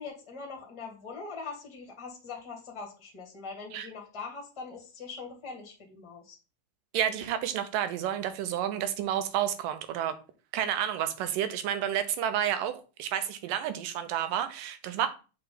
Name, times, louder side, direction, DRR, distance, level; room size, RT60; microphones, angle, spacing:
voice 1, 0.0-6.4, left 4 dB, 15° left, 1.2 m, -42 dB
voice 2, 6.9-10.2 10.5-15.1, right 10 dB, 85° right, 2.5 m, -30 dB
6.7 x 4.6 x 3.9 m
omnidirectional pair, 3.8 m